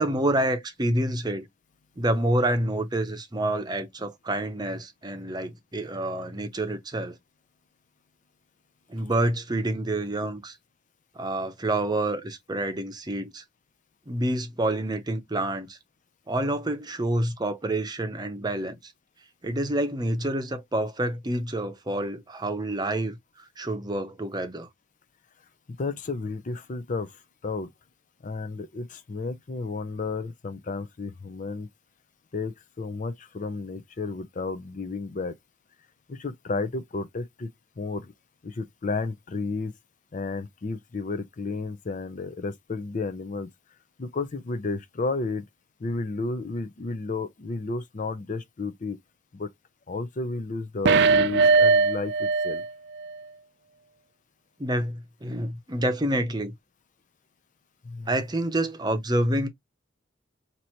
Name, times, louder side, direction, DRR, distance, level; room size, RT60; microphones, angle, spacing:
voice 1, 0.0-1.5 2.0-7.2 8.9-10.6 11.2-13.4 14.1-15.8 16.3-18.9 19.4-24.7 54.6-56.5 58.1-59.5, right 1 dB, 25° right, 0.7 m, -28 dB
voice 2, 25.7-27.1 27.4-27.7 28.2-31.7 32.3-35.3 36.1-37.5 37.8-38.1 38.4-39.7 40.1-43.5 44.0-45.4 45.8-49.0 49.3-49.5 49.9-52.6 57.8-58.1, left 3 dB, 45° left, 0.5 m, -32 dB
sound 1, 50.8-52.7 53.0-53.1, right 4 dB, 65° right, 0.4 m, -20 dB
3.0 x 2.6 x 4.3 m
head